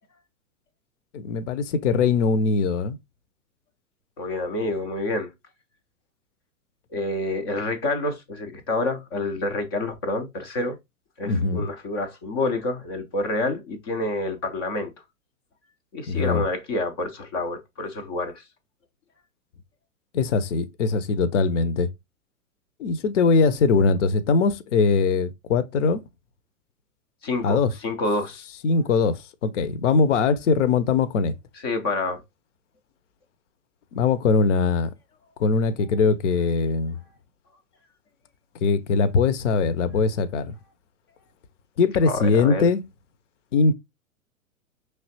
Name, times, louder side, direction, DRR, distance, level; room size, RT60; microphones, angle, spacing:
voice 1, 1.1-3.0 11.3-11.7 16.1-16.4 20.1-21.9 22.8-26.0 27.4-27.7 28.6-31.3 33.9-34.9 35.4-37.0 38.6-40.5 41.8-42.8 43.5-43.7, left 4 dB, 55° left, 0.7 m, -21 dB
voice 2, 4.2-5.3 6.9-10.8 11.2-14.9 15.9-18.4 27.2-28.4 31.6-32.2 42.1-42.7, left 2 dB, 20° left, 0.4 m, -28 dB
5.5 x 3.3 x 2.7 m
figure-of-eight pair, 105°, 44 cm